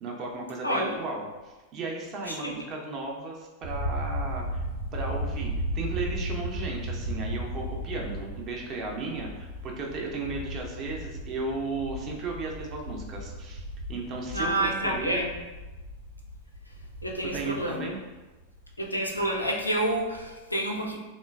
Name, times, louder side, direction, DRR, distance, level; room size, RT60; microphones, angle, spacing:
voice 1, 0.0-4.6 4.9-13.6 13.9-15.2 17.3-18.0, right 3 dB, 35° right, 0 dB, 0.5 m, -35 dB
voice 2, 0.6-1.0 2.3-2.5 14.3-15.3 17.0-17.8 18.8-21.0, right 1 dB, 85° left, -1 dB, 0.4 m, -28 dB
sound 1, 3.6-19.4 19.7-20.2, equal, 85° right, 0.8 m, -36 dB
3.2 x 2.1 x 2.3 m, 1.2 s
figure-of-eight pair, 90°, 0 cm